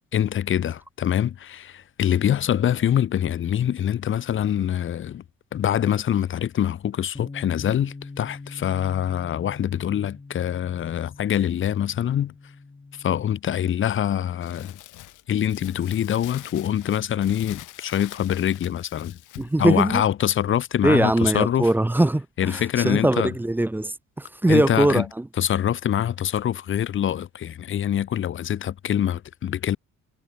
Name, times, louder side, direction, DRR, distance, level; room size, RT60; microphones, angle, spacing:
voice 1, 0.1-5.2 5.5-12.4 12.9-14.8 15.3-19.2 19.6-21.7 22.4-23.3 24.5-25.0 25.4-29.8, left 10 dB, 40° left, 0.6 m, -24 dB
Bass guitar, 7.1-13.4, left 3 dB, 20° left, 3.4 m, -42 dB
Crumpling crinkling, 14.4-19.6, left 15 dB, 85° left, 1.6 m, -44 dB
voice 2, 19.4-20.0 20.8-25.3, right 1 dB, 5° right, 0.5 m, -21 dB
cardioid pair, 90°, 30 cm